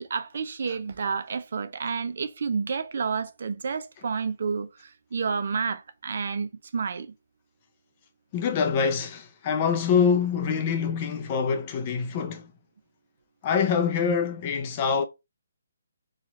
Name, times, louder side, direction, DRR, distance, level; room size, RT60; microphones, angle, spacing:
voice 1, 0.0-4.7 5.1-7.1, right 5 dB, 55° right, 0.6 m, -30 dB
voice 2, 8.3-12.5 13.4-15.0, left 6 dB, 25° left, 0.5 m, -25 dB
4.1 x 2.4 x 4.2 m
hypercardioid pair, 165°, 0 cm